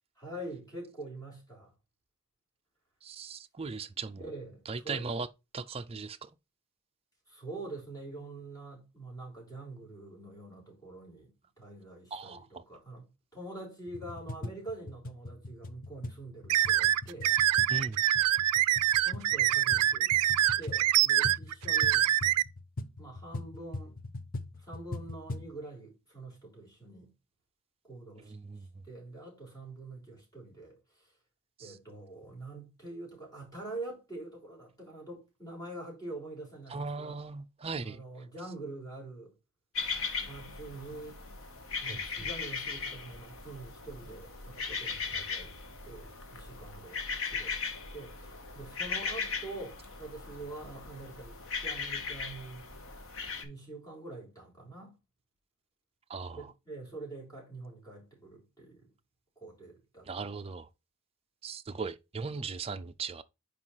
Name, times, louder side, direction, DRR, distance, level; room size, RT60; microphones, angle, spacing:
voice 1, 0.2-1.7 4.2-5.0 7.3-13.0 13.3-17.3 19.0-20.1 20.6-22.1 23.0-24.0 24.6-27.1 27.8-28.3 28.9-31.1 31.6-37.2 37.8-39.3 40.3-41.2 41.8-47.0 47.3-47.6 47.9-52.7 53.4-54.9 56.3-58.9 59.4-60.1, right 2 dB, 15° left, 3.8 m, -45 dB
voice 2, 3.0-4.2 4.7-5.3 5.5-6.3 12.1-12.6 17.7-18.0 28.3-28.7 31.6-31.8 36.7-38.0 41.9-42.0 56.1-56.5 60.1-60.7 61.4-63.2, right 4 dB, 25° right, 0.4 m, -38 dB
sound 1, 13.9-25.5, left 2 dB, 40° left, 0.6 m, -42 dB
sound 2, 16.5-22.4, right 13 dB, 90° right, 0.3 m, -25 dB
sound 3, 39.7-53.4, left 5 dB, 65° left, 1.3 m, -38 dB
5.2 x 4.7 x 5.6 m
head